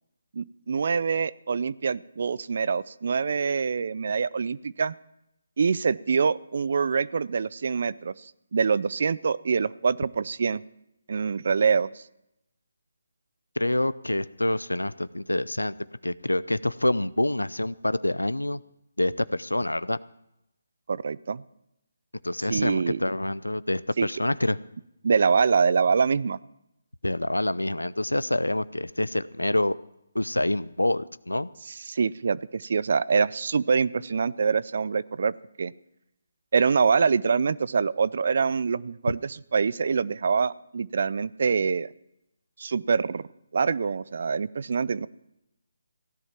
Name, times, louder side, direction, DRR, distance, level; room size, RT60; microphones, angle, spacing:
voice 1, 0.3-4.9 5.6-10.6 11.1-12.0 20.9-21.4 22.5-23.0 24.0-24.1 25.0-26.4 31.9-35.7 36.5-41.9 42.6-43.2 43.5-45.1, right 5 dB, 55° right, 19 dB, 0.5 m, -25 dB
voice 2, 13.6-15.7 16.0-18.6 19.0-20.0 22.2-24.6 27.0-29.8 30.1-31.5, left 1 dB, 90° left, 19 dB, 0.5 m, -26 dB
16.5 x 11.0 x 5.8 m, 0.83 s
figure-of-eight pair, 145°, 0 cm